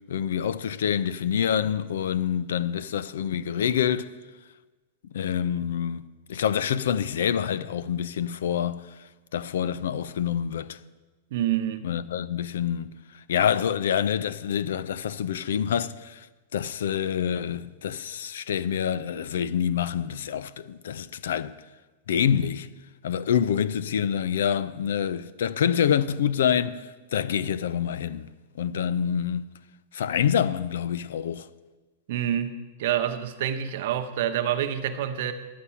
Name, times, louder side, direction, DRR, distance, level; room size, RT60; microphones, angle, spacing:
voice 1, 0.1-4.1 5.1-6.0 6.3-8.9 9.3-10.8 11.8-13.0 13.3-16.3 16.5-21.5 22.1-22.7 23.0-28.3 28.6-29.5 29.9-31.5, left 8 dB, 85° left, 0.5 m, -26 dB
voice 2, 11.3-11.9 32.1-32.5 32.8-35.3, right 10 dB, 55° right, 0.9 m, -27 dB
11.5 x 8.4 x 5.7 m
supercardioid pair, 170°, 0 cm